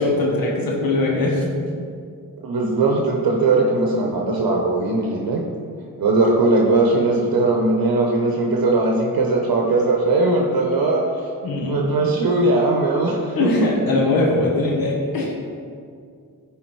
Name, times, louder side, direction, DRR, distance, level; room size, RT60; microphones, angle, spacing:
voice 1, 0.0-1.5 11.4-11.8 13.4-15.3, left 2 dB, 80° left, -3 dB, 1.3 m, -21 dB
voice 2, 2.4-5.5 6.0-11.3 11.7-13.6, right 2 dB, 80° right, 0 dB, 0.8 m, -19 dB
9.6 x 3.6 x 4.6 m, 2.2 s
cardioid pair, 60°, 35 cm